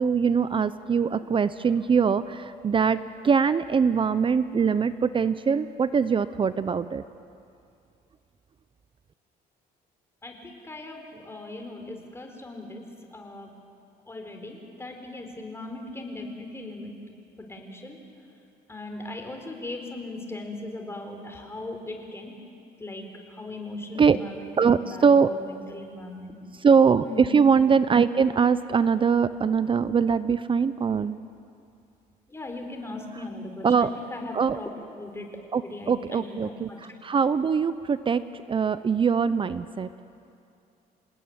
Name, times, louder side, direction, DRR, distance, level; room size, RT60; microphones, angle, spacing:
voice 1, 0.0-7.0 24.0-24.2 24.6-25.3 26.6-31.2 33.6-33.9 34.3-34.6 35.5-38.2 38.5-39.9, right 6 dB, 30° right, 14 dB, 0.7 m, -22 dB
voice 2, 10.2-12.8 13.1-13.5 14.1-16.9 17.4-18.0 18.7-22.3 22.8-26.3 27.0-27.3 32.3-34.7 35.0-35.3 35.6-36.8, left 2 dB, 15° left, 3 dB, 4.4 m, -39 dB
28.5 x 18.5 x 9.6 m, 2.5 s
cardioid pair, 110°, 17 cm